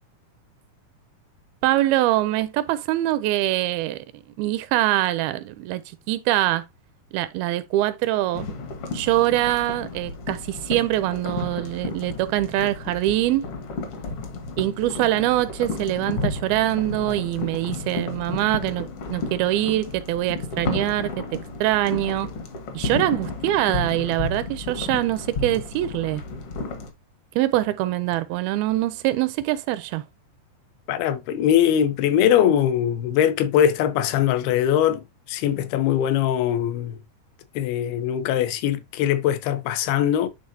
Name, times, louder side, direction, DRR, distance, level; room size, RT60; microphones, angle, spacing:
voice 1, 1.6-4.0 4.4-5.8 6.1-6.6 7.1-8.5 8.9-13.4 14.6-21.1 21.6-22.3 22.7-26.2 27.4-30.0, right 15 dB, 85° right, 2.3 m, -23 dB
sound 1, 8.3-26.9, left 3 dB, 60° left, 1.6 m, -32 dB
voice 2, 30.9-35.0 35.3-37.0 37.6-40.3, left 10 dB, 85° left, 2.7 m, -21 dB
10.5 x 3.8 x 2.7 m
omnidirectional pair, 4.4 m